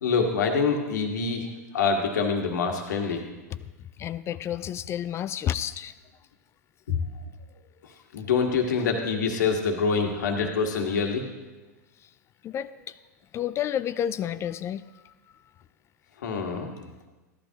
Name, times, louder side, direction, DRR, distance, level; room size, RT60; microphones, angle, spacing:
voice 1, 0.0-1.5 1.7-3.3 6.9-7.0 8.1-11.2 16.2-16.7, left 5 dB, 75° left, 2 dB, 1.6 m, -25 dB
voice 2, 4.0-5.9 12.4-12.9 13.3-15.1, left 10 dB, 30° left, 15 dB, 0.3 m, -30 dB
14.5 x 11.5 x 2.9 m, 1.2 s
hypercardioid pair, 110°, 10 cm